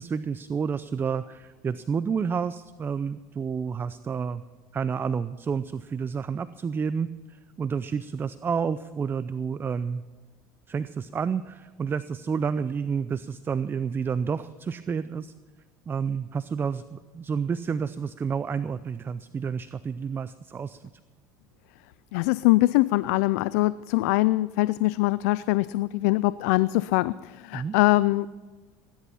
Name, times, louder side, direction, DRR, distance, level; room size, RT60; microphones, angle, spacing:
voice 1, 0.0-4.4 4.7-10.0 10.7-15.3 15.9-20.8 27.5-27.8, right 6 dB, 25° right, 14 dB, 0.5 m, -30 dB
voice 2, 22.1-28.3, left 19 dB, 80° left, 18 dB, 0.4 m, -23 dB
19.0 x 11.0 x 5.6 m, 1.3 s
supercardioid pair, 100°, 9 cm